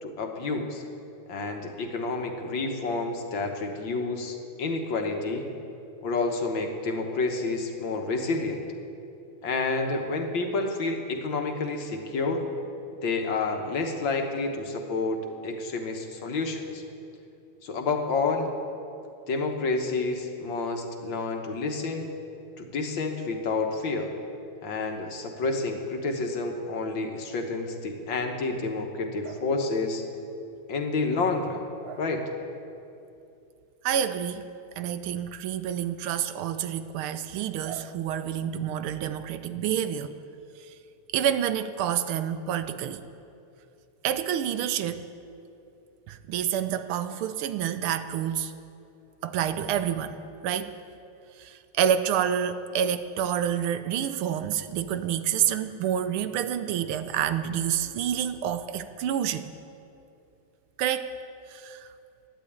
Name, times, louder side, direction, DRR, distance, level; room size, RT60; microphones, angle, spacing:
voice 1, 0.0-0.8 1.3-5.5 6.0-8.6 9.4-12.4 13.0-16.8 17.6-18.5 19.3-22.1 22.6-24.1 24.6-30.0 30.7-31.7 32.0-32.2, left 3 dB, 65° left, 4 dB, 1.8 m, -29 dB
voice 2, 33.8-34.5 34.8-40.1 40.7-40.8 41.1-43.0 44.0-45.0 46.1-48.5 49.2-50.7 51.4-59.5 60.8-61.1 61.5-61.9, right 9 dB, 85° right, 12 dB, 1.5 m, -28 dB
11.5 x 10.5 x 8.6 m, 2.7 s
omnidirectional pair, 2.4 m